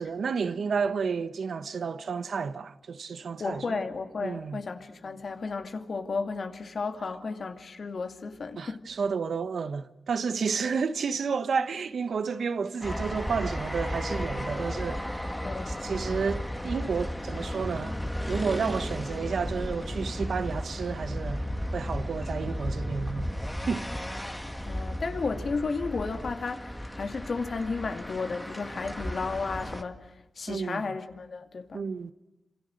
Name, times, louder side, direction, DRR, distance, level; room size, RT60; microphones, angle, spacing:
voice 1, 0.0-3.8 4.2-4.6 8.6-15.4 15.7-18.0 18.3-23.3 23.7-23.8 30.5-30.9 31.7-32.1, right 5 dB, 80° right, 1.2 m, -31 dB
voice 2, 3.4-9.0 15.4-15.7 24.6-31.9, left 4 dB, 60° left, 2.4 m, -33 dB
sound 1, 12.8-29.8, equal, 10° left, 1.8 m, -34 dB
28.0 x 27.0 x 6.6 m
wide cardioid pair, 85°, 0 cm